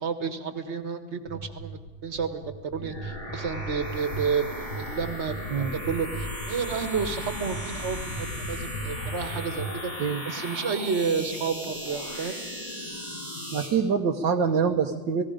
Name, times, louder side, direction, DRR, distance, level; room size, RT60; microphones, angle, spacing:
voice 1, 0.0-2.4 2.7-9.9 10.2-12.3, right 5 dB, 40° right, 9 dB, 1.7 m, -31 dB
sound 1, 1.3-9.7, right 3 dB, 50° left, 2.5 m, -37 dB
sound 2, 2.8-13.7, left 1 dB, 65° left, 7.1 m, -36 dB
voice 2, 13.5-15.2, right 6 dB, 75° right, 2 dB, 1.7 m, -25 dB
29.5 x 18.5 x 5.1 m, 1.2 s
omnidirectional pair, 2.1 m